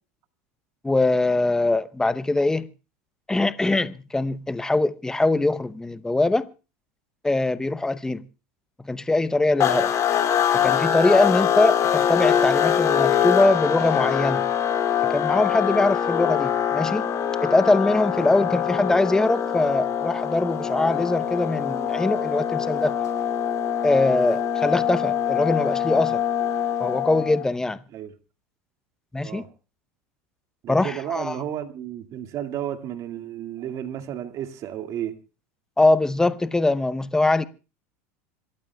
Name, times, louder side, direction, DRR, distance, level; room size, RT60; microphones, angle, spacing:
voice 1, 0.8-2.7 3.3-6.5 7.2-8.2 8.8-9.9 10.5-14.4 15.1-17.1 17.4-22.9 23.8-26.2 26.8-27.8 29.1-29.4 30.7-31.4 35.8-37.5, left 2 dB, 5° left, 0.8 m, -22 dB
sound 1, 9.6-27.4, left 9 dB, 40° left, 2.6 m, -23 dB
voice 2, 30.6-35.2, right 10 dB, 45° right, 2.1 m, -32 dB
26.5 x 14.0 x 2.3 m
supercardioid pair, 110°, 8 cm